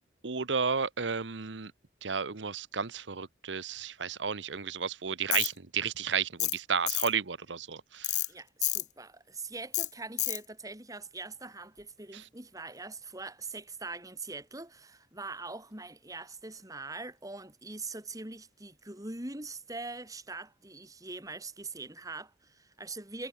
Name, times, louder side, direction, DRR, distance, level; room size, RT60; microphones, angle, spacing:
voice 1, 0.2-1.7 2.0-8.2 12.1-12.2, right 6 dB, 90° right, 1.1 m, -32 dB
Tools, 5.3-5.5 6.4-6.6 6.9-7.1 8.0-8.3 8.6-8.8 9.7-9.9 10.2-10.4, left 15 dB, 40° left, 0.6 m, -29 dB
voice 2, 8.3-23.3, right 3 dB, 20° right, 4.5 m, -42 dB
head